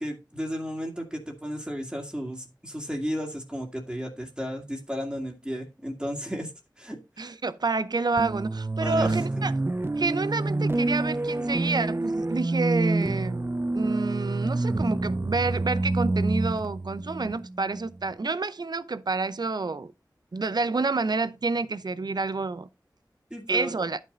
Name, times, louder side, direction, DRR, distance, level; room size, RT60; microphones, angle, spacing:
voice 1, 0.0-6.5 6.8-7.3 8.8-9.4 23.3-23.8, equal, 10° right, 2.1 m, -34 dB
voice 2, 7.2-9.5 10.0-13.4 13.7-19.9 20.3-22.7 23.5-24.0, right 3 dB, 65° right, 0.6 m, -28 dB
sound 1, 8.2-18.0, right 2 dB, 30° right, 0.5 m, -27 dB
11.0 x 5.4 x 3.9 m
wide cardioid pair, 55°, 8 cm